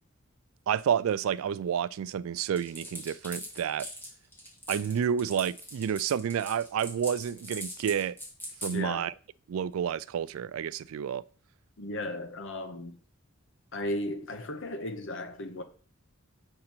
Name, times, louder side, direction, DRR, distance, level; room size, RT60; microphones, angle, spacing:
voice 1, 0.7-3.9 4.7-8.2 8.6-9.1 9.5-11.2, right 8 dB, 75° right, 0.3 m, -30 dB
sound 1, 2.6-8.7, equal, 10° left, 2.0 m, -41 dB
voice 2, 8.7-9.1 11.8-13.0 13.7-15.6, left 1 dB, 65° left, 1.1 m, -35 dB
7.6 x 5.4 x 4.3 m
head